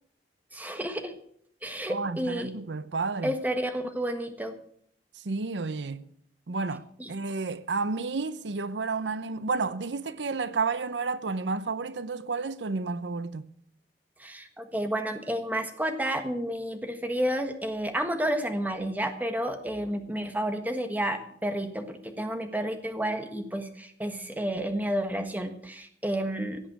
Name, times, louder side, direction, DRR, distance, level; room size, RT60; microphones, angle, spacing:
voice 1, 0.5-1.2 1.6-2.5 3.2-4.5 7.0-7.1 14.2-26.6, right 1 dB, 10° right, 1.4 m, -31 dB
voice 2, 1.9-3.3 5.2-6.1 6.5-13.5, right 4 dB, 85° right, 0.7 m, -31 dB
16.5 x 7.4 x 8.0 m
head